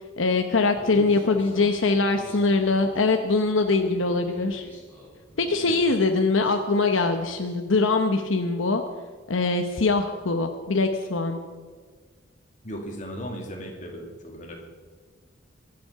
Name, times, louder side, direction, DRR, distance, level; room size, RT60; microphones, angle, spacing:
voice 1, 0.2-4.7 5.4-8.8 9.3-11.4, left 3 dB, 80° left, 5 dB, 0.9 m, -23 dB
Human voice, 0.8-7.6, equal, 10° left, 5.0 m, -46 dB
voice 2, 12.6-14.6, equal, 40° left, 1 dB, 2.5 m, -36 dB
23.0 x 7.8 x 5.7 m, 1.5 s
head